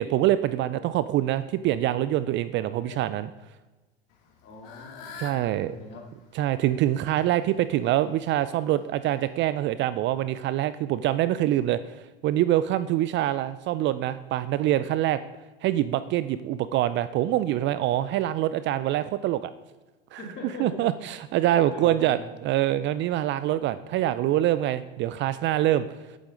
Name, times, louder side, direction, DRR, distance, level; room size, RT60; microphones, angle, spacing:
voice 1, 0.0-3.3 5.2-5.7 6.3-11.8 12.2-15.2 15.6-19.5 20.1-20.2 20.6-22.2 22.4-26.0, right 13 dB, 40° right, 14 dB, 0.4 m, -25 dB
Fowl / Bird, 4.1-9.4, left 5 dB, 60° left, 2.2 m, -48 dB
voice 2, 4.4-5.2 5.5-6.0 20.2-20.7 21.0-21.1 21.6-22.3, left 2 dB, 35° left, 0 dB, 3.2 m, -42 dB
10.5 x 9.1 x 3.8 m, 1.2 s
hypercardioid pair, 95°, 30 cm